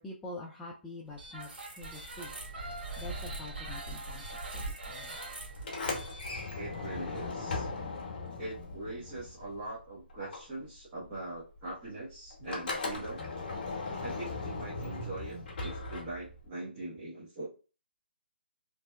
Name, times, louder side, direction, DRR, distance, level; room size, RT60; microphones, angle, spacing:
voice 1, 0.0-2.3 3.0-5.2 15.3-15.4, left 2 dB, 10° left, -4 dB, 0.3 m, -46 dB
sound 1, 1.1-7.0, right 2 dB, 60° right, 1.4 m, -42 dB
Sliding door, 5.6-9.8 10.1-16.5, left 3 dB, 55° left, 0.9 m, -38 dB
voice 2, 6.5-7.7 8.4-13.3 14.0-17.5, right 2 dB, 20° right, -9 dB, 0.9 m, -42 dB
2.7 x 2.1 x 2.3 m, 0.35 s
figure-of-eight pair, 145°, 6 cm